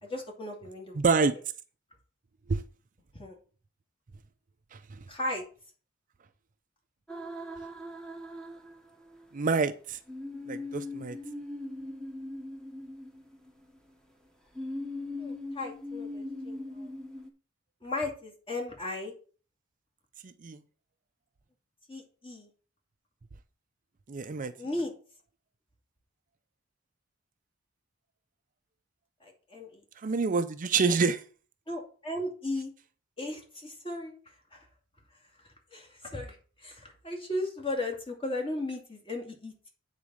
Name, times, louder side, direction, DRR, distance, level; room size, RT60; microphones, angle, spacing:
voice 1, 0.0-1.2 3.1-3.4 5.1-5.4 15.2-16.9 17.8-19.1 21.9-22.5 24.6-24.9 29.2-29.8 31.7-32.7 33.2-34.7 35.7-39.7, left 2 dB, 25° left, 2.5 m, -36 dB
voice 2, 1.0-1.3 2.5-2.6 9.3-10.0 10.5-11.2 20.2-20.6 24.1-24.5 30.0-31.2, right 4 dB, 40° right, 0.5 m, -27 dB
sound 1, 7.1-9.2 10.1-13.8 14.6-17.3, left 1 dB, 5° left, 1.2 m, -40 dB
8.7 x 4.1 x 6.3 m
head